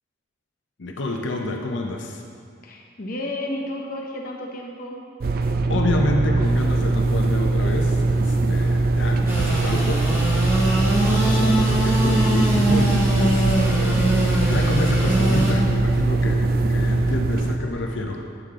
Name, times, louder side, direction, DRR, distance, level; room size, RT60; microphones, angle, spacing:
voice 1, 0.8-2.2 5.7-10.3 10.6-18.2, left 2 dB, 70° left, 2 dB, 0.6 m, -29 dB
voice 2, 2.6-5.0 9.2-9.3 17.3-18.2, left 1 dB, 45° left, 0 dB, 0.9 m, -33 dB
sound 1, 5.2-17.6, right 2 dB, 50° right, 0.4 m, -21 dB
Engine / Sawing, 9.3-15.5, right 1 dB, 10° right, 1.2 m, -23 dB
8.8 x 6.6 x 3.7 m, 2.2 s
head